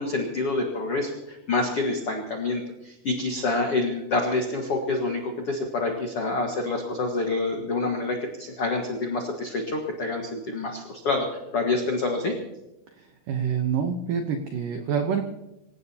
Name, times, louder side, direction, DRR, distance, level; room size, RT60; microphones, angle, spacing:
voice 1, 0.0-12.3, left 3 dB, 85° left, 2 dB, 1.3 m, -27 dB
voice 2, 13.0-15.2, right 7 dB, 85° right, 5 dB, 1.9 m, -27 dB
26.0 x 16.5 x 2.8 m, 0.93 s
omnidirectional pair, 5.3 m